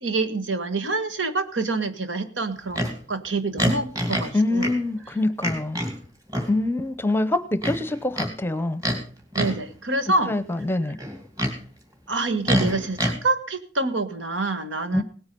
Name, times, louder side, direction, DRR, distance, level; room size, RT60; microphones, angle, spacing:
voice 1, 0.0-4.7 9.3-10.3 12.1-15.0, right 3 dB, 80° right, 9 dB, 1.6 m, -26 dB
Livestock farm animals working animals, 2.7-2.9 3.6-4.3 4.6-4.8 5.4-5.9 6.3-6.5 7.6-8.3 8.8-9.0 9.3-9.6 11.0-11.6 12.4-13.1, equal, 20° right, 2.6 m, -25 dB
voice 2, 4.3-5.8 6.5-8.8 10.3-11.0 14.9-15.0, left 2 dB, 10° left, 13 dB, 0.8 m, -25 dB
18.0 x 9.6 x 5.4 m, 0.40 s
head